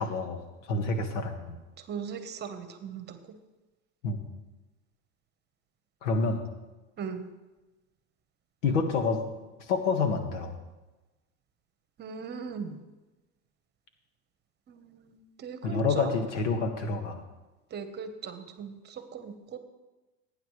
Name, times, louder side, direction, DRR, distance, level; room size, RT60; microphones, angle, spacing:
voice 1, 0.0-1.6 4.0-4.2 6.0-6.4 8.6-9.2 9.6-10.5 15.6-17.2, left 4 dB, 85° left, 6 dB, 1.7 m, -28 dB
voice 2, 1.9-3.2 7.0-7.3 12.0-12.8 14.7-16.1 17.7-19.6, right 5 dB, 30° right, 8 dB, 1.2 m, -38 dB
17.5 x 9.2 x 3.3 m, 1.1 s
supercardioid pair, 120°, 35 cm